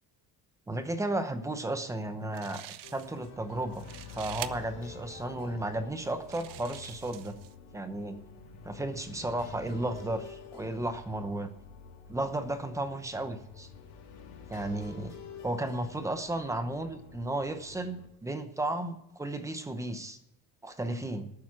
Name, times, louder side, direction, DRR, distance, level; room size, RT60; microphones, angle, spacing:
voice 1, 0.7-7.3 7.7-8.2 8.6-11.5 12.1-13.7 14.5-15.1 15.4-20.2 20.6-21.3, right 1 dB, 10° right, 9 dB, 0.9 m, -34 dB
sound 1, 2.0-2.1 2.3-3.3 3.6-4.5 5.3-5.4 6.0-7.5, right 14 dB, 60° right, 0.8 m, -45 dB
sound 2, 2.8-18.1, left 5 dB, 80° left, 3.3 m, -49 dB
12.0 x 9.5 x 6.0 m, 0.80 s
cardioid pair, 180°, 36 cm